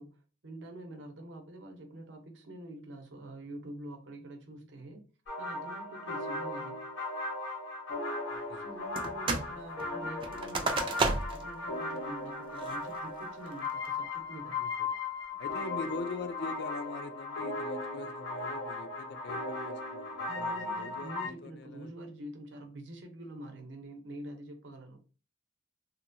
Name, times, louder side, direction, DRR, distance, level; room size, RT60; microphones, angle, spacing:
voice 1, 0.0-5.0 5.4-6.8 8.5-11.0 11.3-14.6 20.3-25.0, right 1 dB, 60° right, 0.7 m, -46 dB
sound 1, 5.3-21.3, left 3 dB, 75° left, 1.0 m, -37 dB
voice 2, 8.3-8.6 14.6-14.9 15.4-21.9, left 4 dB, 55° left, 0.4 m, -42 dB
sound 2, 9.0-9.5 9.8-11.5 12.0-12.1 12.6-13.0 13.5-13.9, right 3 dB, 25° right, 0.3 m, -32 dB
2.8 x 2.2 x 2.6 m
head